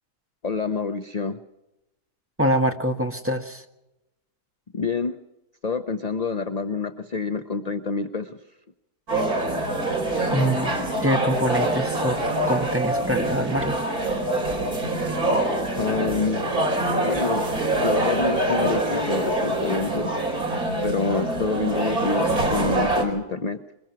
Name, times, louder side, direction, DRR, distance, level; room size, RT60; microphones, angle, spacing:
voice 1, 0.4-1.4 4.7-5.2 5.6-8.4 15.8-16.5 17.0-17.5 17.8-20.1 20.8-23.6, left 4 dB, 35° left, 9 dB, 0.6 m, -27 dB
voice 2, 2.4-3.6 10.3-10.7 11.0-12.2 12.5-14.2, equal, 10° right, 3 dB, 1.4 m, -25 dB
sound 1, 9.1-23.0, right 1 dB, 65° right, 5.0 m, -25 dB
23.0 x 21.5 x 5.9 m, 0.94 s
omnidirectional pair, 1.7 m